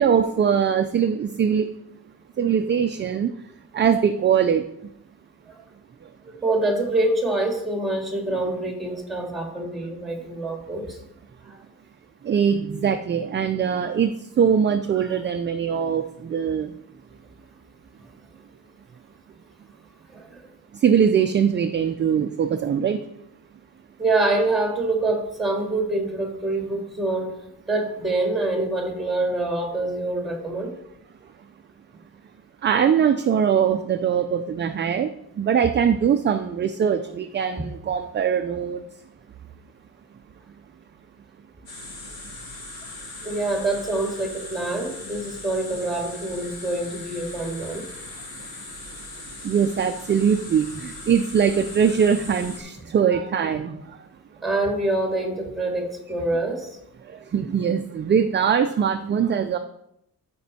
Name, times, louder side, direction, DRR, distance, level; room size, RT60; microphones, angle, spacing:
voice 1, 0.0-1.7 2.4-3.3 3.7-4.6 12.2-16.7 20.7-23.0 32.6-38.8 49.4-54.1 57.0-59.6, right 7 dB, 30° right, 7 dB, 0.4 m, -22 dB
voice 2, 6.2-11.0 11.4-11.6 15.0-15.2 20.1-20.5 24.0-27.3 27.7-30.7 37.6-37.7 43.2-47.8 54.4-56.7, right 2 dB, ahead, 0 dB, 2.0 m, -26 dB
sound 1, 41.7-52.6, left 2 dB, 80° left, 2.6 m, -39 dB
13.5 x 5.2 x 4.1 m, 0.81 s
wide cardioid pair, 155°, 36 cm